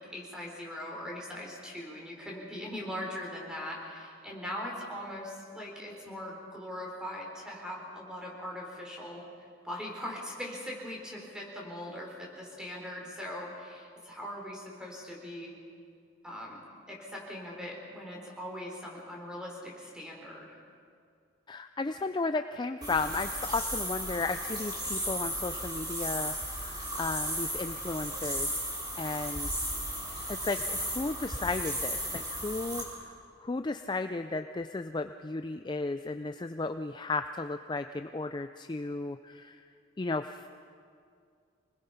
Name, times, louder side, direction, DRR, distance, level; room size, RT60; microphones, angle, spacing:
voice 1, 0.0-9.2 9.6-15.5 16.2-16.6 16.9-20.6, left 1 dB, 5° right, -2 dB, 4.1 m, -40 dB
voice 2, 21.5-28.6 29.0-29.7 30.3-39.6 40.0-40.5, left 3 dB, 20° left, 8 dB, 0.4 m, -34 dB
sound 1, 22.8-32.8, equal, 20° right, 4.7 m, -35 dB
26.0 x 20.0 x 5.7 m, 2.3 s
head